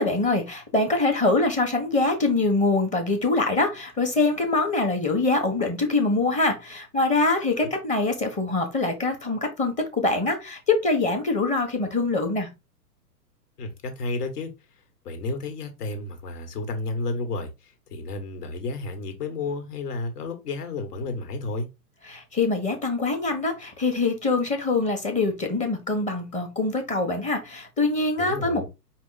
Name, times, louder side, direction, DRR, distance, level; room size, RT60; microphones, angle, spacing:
voice 1, 0.0-12.5 22.1-28.7, left 3 dB, 15° left, 1.1 m, -24 dB
voice 2, 13.6-14.5 15.0-21.7 28.2-28.7, left 3 dB, 70° left, 1.7 m, -32 dB
4.9 x 2.4 x 3.9 m
hypercardioid pair, 115°, 49 cm